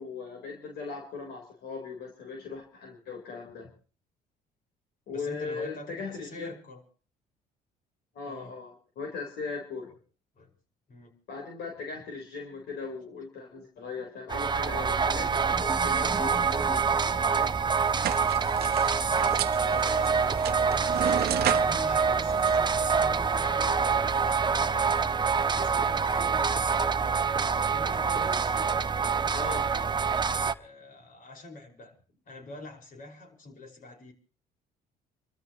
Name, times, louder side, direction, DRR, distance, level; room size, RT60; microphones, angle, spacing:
voice 1, 0.0-3.7 5.1-6.5 8.1-9.9 11.3-16.8 17.3-17.5 29.3-29.6, left 4 dB, 65° left, 1 dB, 4.1 m, -38 dB
voice 2, 5.1-6.8 8.2-8.5 10.4-10.5 10.9-11.1 18.6-20.9 21.3-25.2 25.5-27.2 27.6-29.0 29.3-29.9 30.5-32.0 32.3-34.1, left 2 dB, 50° left, 3 dB, 5.5 m, -45 dB
sound 1, 14.1-18.2, right 2 dB, 5° right, 1.8 m, -42 dB
sound 2, 14.3-30.5, right 5 dB, 25° right, 0.9 m, -26 dB
sound 3, 17.9-23.2, right 12 dB, 65° right, 1.0 m, -34 dB
29.0 x 14.0 x 3.1 m, 0.41 s
supercardioid pair, 85°, 18 cm